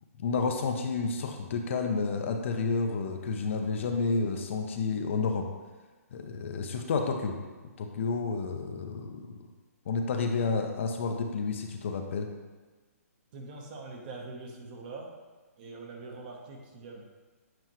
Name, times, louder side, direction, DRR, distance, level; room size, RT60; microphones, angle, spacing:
voice 1, 0.2-5.5 6.1-7.4 7.8-9.5 9.9-12.3, left 4 dB, 50° left, 4 dB, 0.7 m, -30 dB
voice 2, 13.3-15.1 15.6-17.0, right 3 dB, 35° right, 1 dB, 1.0 m, -43 dB
7.8 x 4.4 x 3.0 m, 1.3 s
hypercardioid pair, 150°, 8 cm